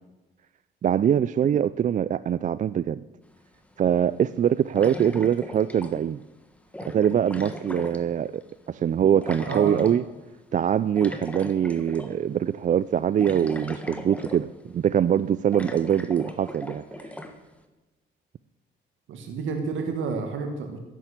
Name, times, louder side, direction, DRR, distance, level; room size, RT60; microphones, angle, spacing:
voice 1, 0.8-3.0 3.8-6.2 6.9-10.0 10.5-17.1, right 9 dB, 40° right, 16 dB, 0.4 m, -23 dB
sound 1, 3.4-3.5 4.8-6.2 6.7-8.5 9.2-10.0 11.0-12.2 12.6-12.7 13.2-14.7 15.0-15.1 15.5-17.4, left 1 dB, 5° left, 1.5 m, -38 dB
voice 2, 9.4-9.9 19.1-20.8, right 4 dB, 75° right, 5 dB, 1.8 m, -30 dB
11.5 x 11.0 x 8.2 m, 1.1 s
cardioid pair, 90°, 20 cm